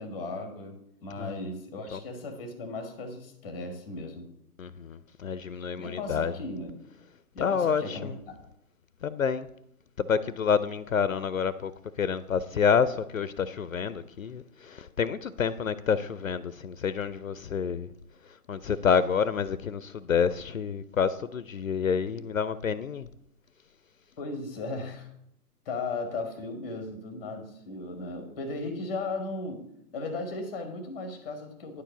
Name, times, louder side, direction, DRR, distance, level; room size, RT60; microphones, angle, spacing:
voice 1, 0.0-4.3 5.7-6.7 7.3-8.5 24.2-25.1 25.6-29.7 29.9-31.8, left 3 dB, 10° left, 0.8 m, -36 dB
voice 2, 4.6-6.3 7.4-8.2 9.0-9.5 10.0-17.9 18.2-23.1, left 6 dB, 60° left, 0.5 m, -28 dB
9.8 x 4.7 x 6.8 m
figure-of-eight pair, 145°, 46 cm